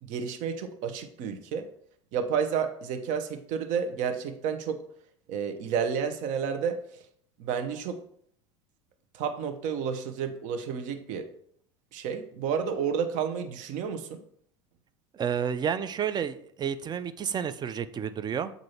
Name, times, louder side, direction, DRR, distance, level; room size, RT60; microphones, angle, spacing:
voice 1, 0.0-1.7 2.1-4.8 5.3-6.8 7.4-8.0 9.1-11.3 11.9-14.2, right 7 dB, 55° right, 8 dB, 0.9 m, -31 dB
voice 2, 15.1-18.5, right 8 dB, 25° right, 13 dB, 0.5 m, -30 dB
7.6 x 2.7 x 5.7 m, 0.64 s
hypercardioid pair, 80°, 15 cm